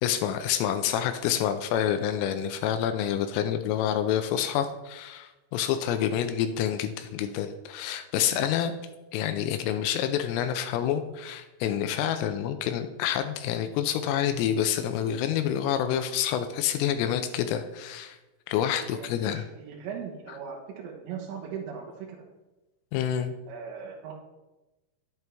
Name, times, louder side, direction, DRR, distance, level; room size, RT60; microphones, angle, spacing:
voice 1, 0.0-8.7 9.1-18.2 18.5-19.5 22.9-23.4, left 10 dB, 85° left, 8 dB, 3.2 m, -28 dB
voice 2, 18.9-22.1 23.5-24.1, right 7 dB, 75° right, -3 dB, 3.7 m, -39 dB
11.0 x 9.1 x 3.5 m, 1.1 s
omnidirectional pair, 5.9 m